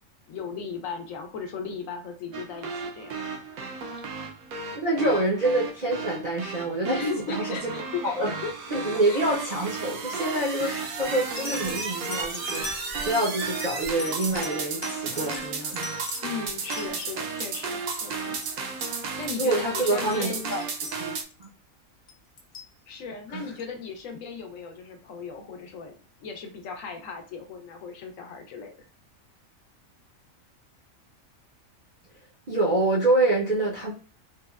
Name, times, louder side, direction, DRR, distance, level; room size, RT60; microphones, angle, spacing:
voice 1, 0.3-3.2 6.8-8.5 9.1-9.2 16.2-18.4 19.2-20.6 22.9-28.7, left 5 dB, 75° left, 1.0 m, -37 dB
sound 1, 2.3-21.2, right 4 dB, 85° right, 1.0 m, -34 dB
voice 2, 4.7-7.7 8.0-8.4 8.7-15.9 19.4-20.6 21.0-21.1 21.4-21.5 23.3-23.4 32.5-33.9, right 2 dB, 50° right, 0.5 m, -26 dB
sound 2, 11.4-17.5 17.8-18.5 18.8-19.0 19.2-19.4 19.8-21.5 22.1-22.7 23.6-23.7, left 3 dB, 50° left, 0.6 m, -40 dB
3.4 x 2.1 x 2.2 m
omnidirectional pair, 1.4 m